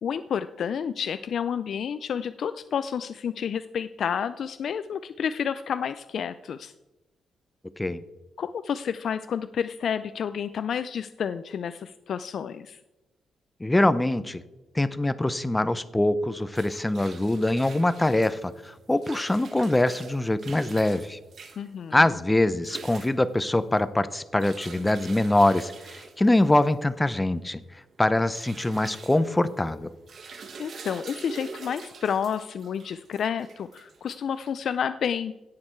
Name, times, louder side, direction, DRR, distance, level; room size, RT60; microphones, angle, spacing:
voice 1, 0.0-6.7 8.4-12.8 21.6-22.0 30.6-35.4, left 7 dB, 60° left, 12 dB, 0.4 m, -30 dB
voice 2, 13.6-14.4 14.7-21.2 21.9-27.6 28.0-29.9, left 1 dB, 10° left, 14 dB, 0.6 m, -23 dB
sound 1, 16.3-34.8, right 5 dB, 50° right, 1.6 m, -46 dB
17.0 x 6.6 x 4.5 m, 1.0 s
cardioid pair, 130°, 0 cm